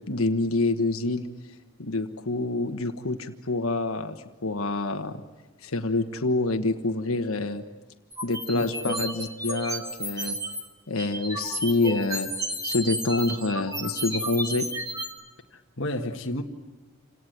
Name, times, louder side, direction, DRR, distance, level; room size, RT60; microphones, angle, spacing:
voice 1, 0.1-1.3 1.8-5.2 5.6-7.6 8.2-10.4 10.9-12.3 12.6-14.6, left 2 dB, 80° left, 1.4 m, -27 dB
sound 1, 8.1-10.6 11.0-15.1, right 1 dB, 15° right, 2.6 m, -32 dB
voice 2, 8.5-9.0 15.5-16.4, left 1 dB, 60° left, 1.6 m, -32 dB
27.5 x 18.5 x 9.3 m
head